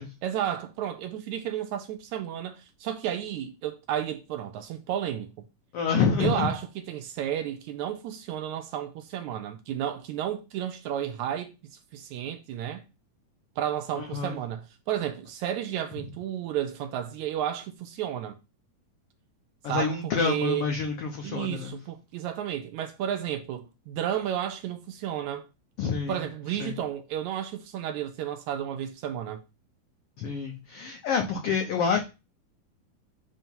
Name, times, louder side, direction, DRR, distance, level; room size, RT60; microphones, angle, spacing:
voice 1, 0.2-5.3 6.2-11.5 11.9-12.8 13.6-18.4 19.7-20.0 20.2-20.7 21.2-25.5 26.1-29.4, right 10 dB, 75° right, 1.8 m, -32 dB
voice 2, 5.7-6.5 14.0-14.4 19.6-21.7 25.8-26.2 26.6-26.7 30.2-32.0, left 5 dB, 85° left, 1.3 m, -27 dB
7.6 x 2.8 x 5.3 m
omnidirectional pair, 3.7 m